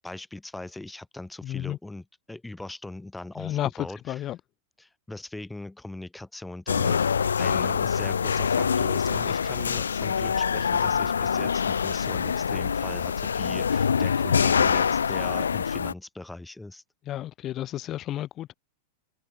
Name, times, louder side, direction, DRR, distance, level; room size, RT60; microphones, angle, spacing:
voice 1, 0.0-4.3 4.8-7.0 7.4-16.8, left 2 dB, 5° left, 6.6 m, -40 dB
voice 2, 1.4-1.8 3.4-3.7 4.1-4.4 17.1-18.5, left 13 dB, 30° left, 0.9 m, -31 dB
sound 1, 6.7-15.9, left 6 dB, 70° left, 0.5 m, -25 dB
figure-of-eight pair, 90°, 0 cm